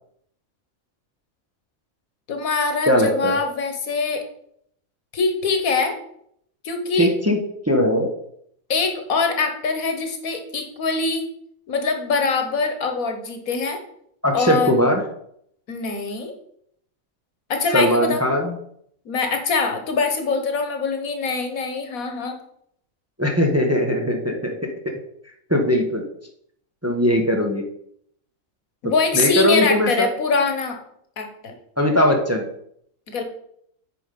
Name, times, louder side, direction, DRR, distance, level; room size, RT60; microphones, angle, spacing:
voice 1, 2.3-4.2 5.1-6.0 6.6-7.1 8.7-11.3 11.7-13.8 14.3-14.8 15.7-16.3 17.5-18.2 19.0-22.4 28.8-30.8 31.2-31.5 33.1-33.2, left 4 dB, 85° left, 5 dB, 1.7 m, -23 dB
voice 2, 2.9-3.4 7.0-7.4 7.7-8.1 14.2-15.0 17.7-18.5 23.2-24.6 24.8-24.9 25.5-26.0 26.8-27.6 29.1-30.1 31.8-32.4, equal, 10° right, 3 dB, 0.9 m, -19 dB
9.1 x 4.9 x 5.2 m, 0.70 s
omnidirectional pair, 1.5 m